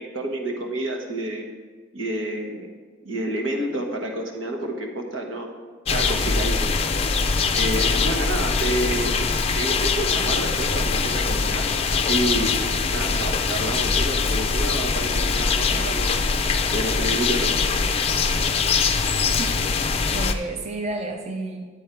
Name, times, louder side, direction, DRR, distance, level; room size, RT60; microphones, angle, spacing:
voice 1, 0.0-1.5 1.9-2.7 3.0-5.5 5.9-6.8 7.5-9.3 9.5-16.3 16.7-17.5, right 1 dB, 85° right, 2 dB, 1.3 m, -29 dB
sound 1, 5.9-20.3, left 4 dB, 30° left, 0.5 m, -23 dB
voice 2, 19.4-21.7, right 2 dB, 35° right, 3 dB, 0.7 m, -32 dB
9.8 x 8.3 x 4.6 m, 1.5 s
head